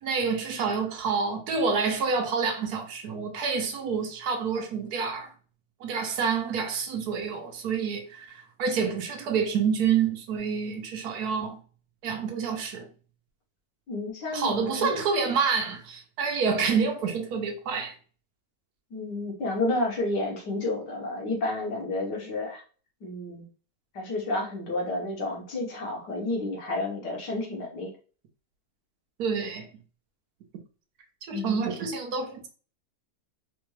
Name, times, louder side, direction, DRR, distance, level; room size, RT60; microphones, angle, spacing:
voice 1, 0.0-5.3 5.8-11.6 12.0-12.9 14.3-17.9 29.2-29.7 31.2-32.5, right 5 dB, 70° right, 1.2 m, -28 dB
voice 2, 13.9-14.9 18.9-22.6 23.0-23.4 23.9-27.9 31.3-31.7, left 2 dB, 80° left, 1.8 m, -31 dB
4.1 x 2.3 x 3.1 m
omnidirectional pair, 1.8 m